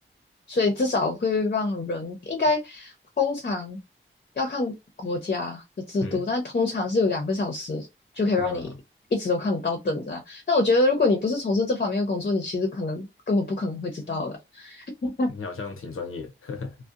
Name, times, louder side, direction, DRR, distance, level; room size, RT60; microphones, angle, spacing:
voice 1, 0.5-3.8 4.4-7.9 8.1-8.7 9.1-15.3, left 3 dB, 45° left, 0.6 m, -26 dB
voice 2, 8.4-8.8 15.3-16.8, left 4 dB, 90° left, 0.6 m, -35 dB
2.6 x 2.1 x 2.4 m
wide cardioid pair, 70°, 21 cm